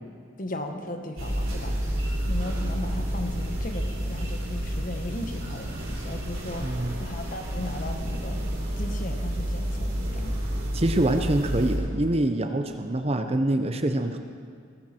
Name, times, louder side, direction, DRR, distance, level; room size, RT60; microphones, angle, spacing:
voice 1, 0.4-1.7 2.2-6.7 7.0-8.4 8.8-10.3, left 1 dB, 40° left, 5 dB, 1.2 m, -36 dB
sound 1, 1.2-11.8, equal, 90° right, 4.3 m, -30 dB
voice 2, 6.6-7.1 10.7-14.2, right 1 dB, 30° right, 7 dB, 0.7 m, -25 dB
18.0 x 14.5 x 4.4 m, 2.2 s
head